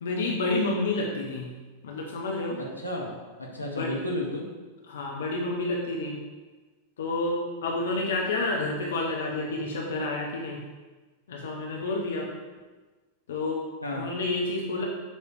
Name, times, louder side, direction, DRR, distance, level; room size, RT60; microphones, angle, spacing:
voice 1, 0.0-1.5 1.8-2.6 3.5-4.0 4.9-6.2 7.0-10.6 11.3-12.3 13.3-13.6 13.9-14.8, left 2 dB, 60° left, -1 dB, 0.9 m, -29 dB
voice 2, 2.6-4.5 13.8-14.2, left 1 dB, 85° left, -2 dB, 1.0 m, -33 dB
7.3 x 3.3 x 4.6 m, 1.3 s
figure-of-eight pair, 90°, 0 cm